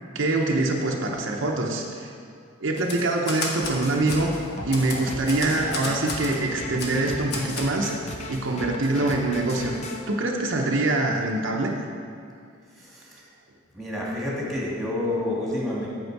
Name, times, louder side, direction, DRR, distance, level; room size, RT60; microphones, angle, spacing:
voice 1, 0.1-2.1 2.6-4.3 4.6-7.9 8.3-9.8 10.1-11.7, right 2 dB, 60° right, 0 dB, 0.7 m, -24 dB
Typewriter, 2.8-3.8 4.1-4.2 4.7-6.4 6.8-7.0 7.3-7.7, left 3 dB, 50° left, 1.2 m, -32 dB
sound 1, 3.6-10.0, left 1 dB, 35° left, 0.7 m, -36 dB
voice 2, 12.8-13.2 13.7-15.9, left 1 dB, ahead, -5 dB, 1.7 m, -29 dB
7.9 x 7.2 x 4.7 m, 2.4 s
head